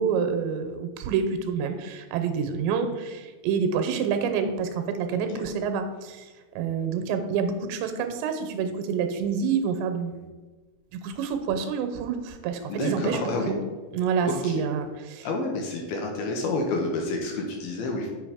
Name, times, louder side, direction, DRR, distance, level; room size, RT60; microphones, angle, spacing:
voice 1, 0.0-6.3 6.6-10.3 10.9-13.6 13.9-15.3, right 6 dB, 85° right, 7 dB, 3.0 m, -27 dB
voice 2, 12.7-13.5 14.3-14.6 15.2-18.1, left 2 dB, 70° left, 1 dB, 2.6 m, -29 dB
7.7 x 6.9 x 5.0 m, 1.3 s
omnidirectional pair, 5.2 m